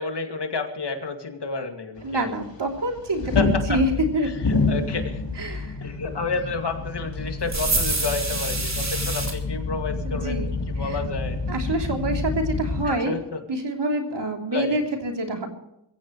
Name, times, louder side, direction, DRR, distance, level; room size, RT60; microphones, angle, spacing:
voice 1, 0.0-2.3 3.3-3.8 4.2-5.2 5.8-11.4 11.7-11.9 12.8-13.4 14.5-14.8, left 4 dB, 65° left, 5 dB, 2.4 m, -30 dB
sound 1, 2.0-12.9, left 3 dB, 85° left, 4.0 m, -28 dB
voice 2, 2.0-4.3 5.4-5.7 10.0-10.5 10.8-11.0 11.5-13.2 13.5-15.5, right 1 dB, 70° right, 2 dB, 3.3 m, -26 dB
sound 2, 7.5-9.3, right 2 dB, 40° right, 3.6 m, -26 dB
22.5 x 16.0 x 3.2 m, 0.83 s
wide cardioid pair, 100°, 44 cm